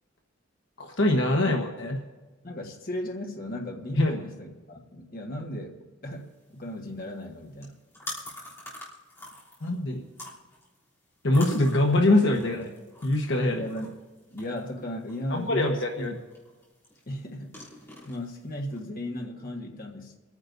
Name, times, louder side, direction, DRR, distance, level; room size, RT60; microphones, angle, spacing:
voice 1, 0.8-2.0 3.9-4.2 9.6-10.0 11.2-12.7 13.0-13.6 15.3-16.2, left 1 dB, 65° left, 2 dB, 1.2 m, -23 dB
voice 2, 2.4-7.8 13.5-13.9 14.3-16.1 17.1-17.6 18.0-20.2, left 1 dB, 45° left, 1 dB, 1.5 m, -36 dB
sound 1, 6.1-18.8, left 1 dB, 15° left, 3.2 m, -47 dB
27.5 x 9.7 x 2.7 m, 1.3 s
head